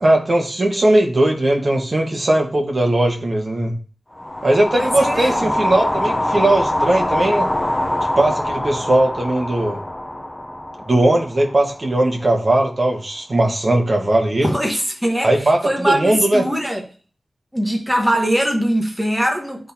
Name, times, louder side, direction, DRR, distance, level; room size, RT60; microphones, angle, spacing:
voice 1, 0.0-3.7 4.4-7.5 8.2-9.8 10.9-14.5 15.2-16.5, right 1 dB, 45° right, 1.3 m, -18 dB
sound 1, 4.1-12.4, left 1 dB, 15° left, 0.7 m, -24 dB
voice 2, 4.7-5.5 14.4-16.8 17.5-19.7, right 1 dB, ahead, 1.2 m, -21 dB
10.0 x 3.8 x 2.8 m
wide cardioid pair, 90°, 0 cm